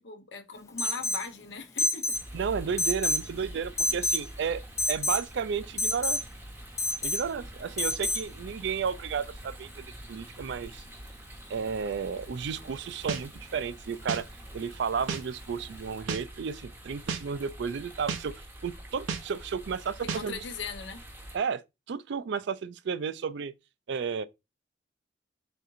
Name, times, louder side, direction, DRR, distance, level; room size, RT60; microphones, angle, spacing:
voice 1, 0.0-2.1 3.5-3.6 20.1-21.0, left 5 dB, 65° left, 0.8 m, -39 dB
Alarm, 0.8-1.3 1.8-2.2 2.8-3.3 3.8-4.2 4.8-5.2 5.8-6.2 6.8-7.2 7.8-8.2, left 2 dB, 15° left, 0.4 m, -28 dB
sound 1, 2.1-21.4, right 1 dB, 10° right, 0.8 m, -46 dB
voice 2, 2.3-4.6 4.9-6.2 7.0-10.8 11.5-14.3 14.5-20.4 21.3-21.6 21.9-23.5 23.9-24.3, right 6 dB, 60° right, 0.4 m, -33 dB
sound 2, 13.1-13.2 14.1-14.2 15.1-15.2 16.1-16.2 17.1-17.2 18.1-18.2 19.1-19.2 20.1-20.2, right 6 dB, 85° right, 0.7 m, -31 dB
4.3 x 3.7 x 2.5 m
head